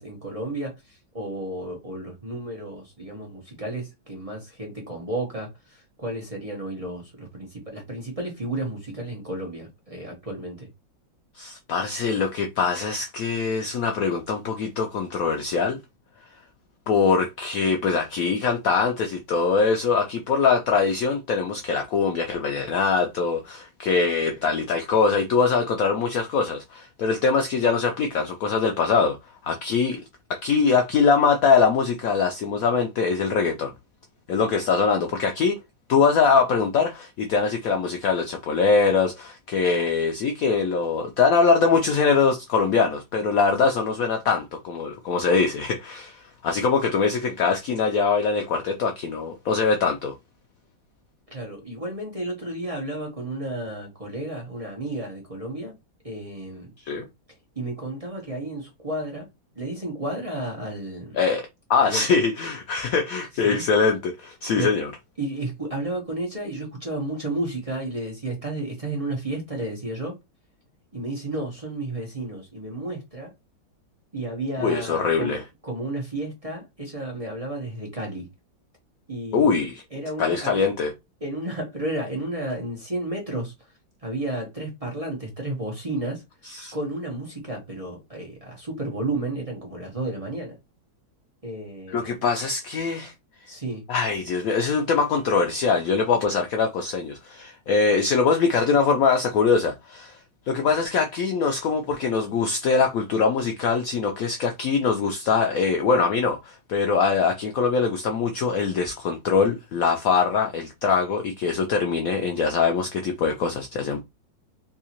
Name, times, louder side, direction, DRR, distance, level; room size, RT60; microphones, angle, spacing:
voice 1, 0.0-10.7 51.3-55.7 56.0-56.7 57.6-59.3 59.6-61.2 61.8-62.0 63.4-63.7 64.6-64.7 65.2-70.1 70.9-73.3 74.1-78.3 79.1-79.6 79.9-80.7 81.2-83.5 84.0-86.2 86.7-90.6 91.4-92.3 93.5-93.8, right 1 dB, 25° right, 0.8 m, -32 dB
voice 2, 11.4-15.8 16.9-29.2 29.4-30.0 30.3-33.7 34.3-35.6 35.9-50.1 56.9-57.1 61.1-64.9 74.6-75.4 79.3-79.8 80.2-80.9 86.4-86.7 91.9-93.1 93.9-100.2 100.5-114.0, left 5 dB, 90° left, 0.7 m, -23 dB
3.6 x 2.7 x 2.8 m
omnidirectional pair, 2.1 m